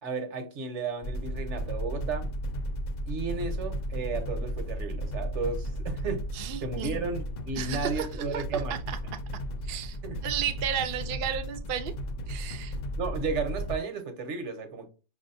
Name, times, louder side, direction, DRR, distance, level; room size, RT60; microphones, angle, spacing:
voice 1, 0.0-2.3 3.1-6.2 6.6-8.8 10.0-10.2 13.0-14.9, right 4 dB, 80° right, 1.2 m, -33 dB
sound 1, 1.0-13.8, equal, 60° left, 0.4 m, -34 dB
voice 2, 6.3-7.0 7.6-9.0 9.6-10.0 10.2-11.9 12.3-12.8, right 9 dB, 60° right, 0.6 m, -33 dB
4.9 x 2.7 x 2.6 m
omnidirectional pair, 1.2 m